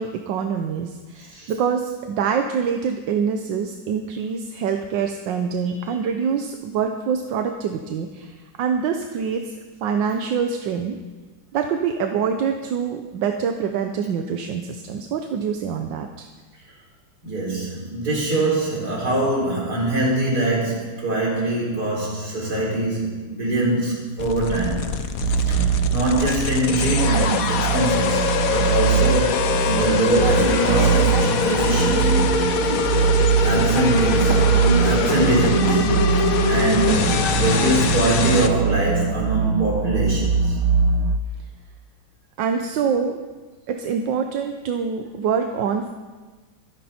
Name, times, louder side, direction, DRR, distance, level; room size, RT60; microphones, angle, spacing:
voice 1, 0.0-9.5 9.8-11.0 11.5-16.3 42.4-43.2 43.7-45.9, right 6 dB, 65° right, 5 dB, 1.4 m, -25 dB
voice 2, 1.2-1.5 17.2-24.9 25.5-32.3 33.4-36.1 36.5-40.6, right 2 dB, 45° right, -3 dB, 4.9 m, -23 dB
sound 1, 24.2-38.5, left 7 dB, 55° left, 1.0 m, -24 dB
slow dark drone, 25.2-41.2, right 8 dB, 90° right, 1.6 m, -22 dB
sound 2, 30.1-37.9, left 2 dB, 30° left, 1.3 m, -27 dB
25.0 x 9.8 x 4.4 m, 1.3 s
omnidirectional pair, 2.3 m